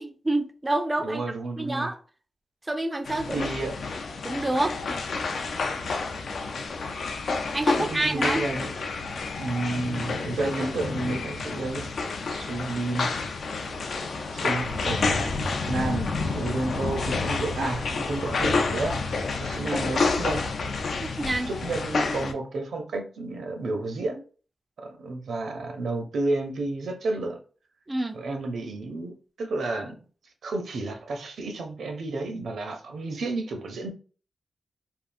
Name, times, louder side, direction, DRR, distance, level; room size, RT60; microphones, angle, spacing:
voice 1, 0.0-1.2 1.6-2.0 2.7-3.5 4.2-5.0 7.5-8.5 21.0-21.5 27.9-28.2, right 1 dB, 15° right, 0.3 m, -28 dB
voice 2, 1.0-1.9 3.3-3.7 7.6-8.7 9.4-11.9 12.3-13.1 14.3-15.4 15.7-20.4 21.5-24.2 24.8-27.4 28.1-29.9 30.4-33.9, right 2 dB, 80° right, 0.6 m, -31 dB
sound 1, 3.1-22.3, left 4 dB, 70° left, 0.4 m, -29 dB
sound 2, 13.7-18.8, left 3 dB, 85° left, 0.7 m, -39 dB
3.6 x 2.4 x 2.5 m
wide cardioid pair, 150°, 0 cm